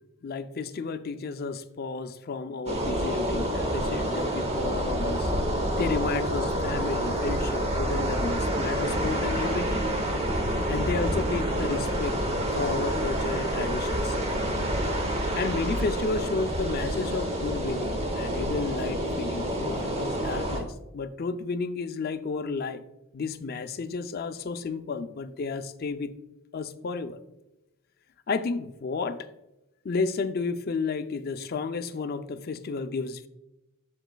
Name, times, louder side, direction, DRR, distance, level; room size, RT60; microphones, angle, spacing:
voice 1, 0.2-5.3 5.8-9.9 10.7-12.2 12.5-14.2 15.4-22.8 23.1-26.1 26.5-27.2 28.3-29.3 29.8-33.3, left 4 dB, 45° left, 10 dB, 0.4 m, -32 dB
sound 1, 2.7-20.6, right 1 dB, 30° right, 0.9 m, -28 dB
7.9 x 7.3 x 2.2 m, 0.94 s
head